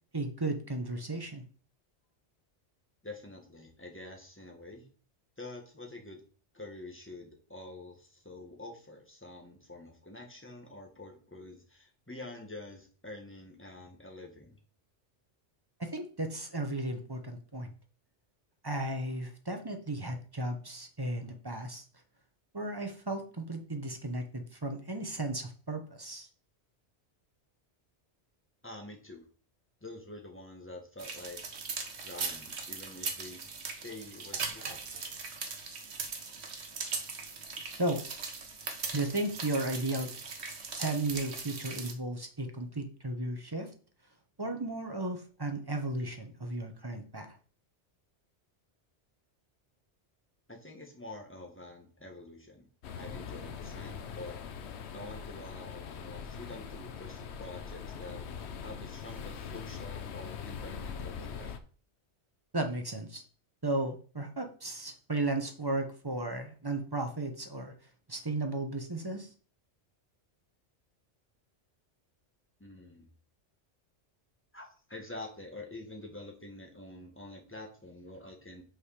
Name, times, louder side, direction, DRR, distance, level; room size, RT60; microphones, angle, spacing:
voice 1, 0.1-1.4 15.8-17.7 18.6-21.8 22.5-26.3 37.8-38.0 38.9-40.1 40.8-43.7 44.4-47.3 62.5-63.2 63.6-67.7 68.1-69.3, right 2 dB, 20° right, 5 dB, 0.9 m, -34 dB
voice 2, 3.0-4.9 5.4-6.2 6.5-14.6 28.6-29.2 29.8-31.4 32.0-33.4 33.8-34.8 50.5-52.7 52.9-54.4 54.9-61.5 72.6-73.1 74.5-78.6, left 2 dB, 10° left, 1 dB, 1.5 m, -47 dB
sound 1, 31.0-41.9, right 4 dB, 70° right, 1.3 m, -39 dB
sound 2, 52.8-61.6, left 6 dB, 70° left, 1.0 m, -42 dB
5.8 x 4.9 x 4.9 m, 0.40 s
omnidirectional pair, 1.2 m